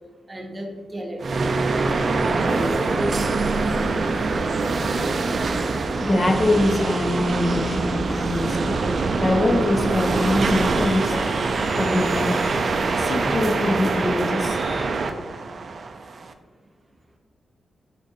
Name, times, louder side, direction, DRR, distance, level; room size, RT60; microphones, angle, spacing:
voice 1, 0.3-1.4 2.3-3.1 3.5-4.0 4.3-4.8, right 1 dB, 30° right, 1 dB, 0.8 m, -32 dB
sound 1, 1.2-16.3, right 3 dB, 55° right, 0.4 m, -24 dB
voice 2, 6.0-8.8 9.2-12.4 12.9-14.6, left 1 dB, 35° left, 3 dB, 0.6 m, -23 dB
sound 2, 10.2-14.9, left 2 dB, 60° left, 1.1 m, -42 dB
5.2 x 2.5 x 3.9 m, 1.4 s
cardioid pair, 70°, 0 cm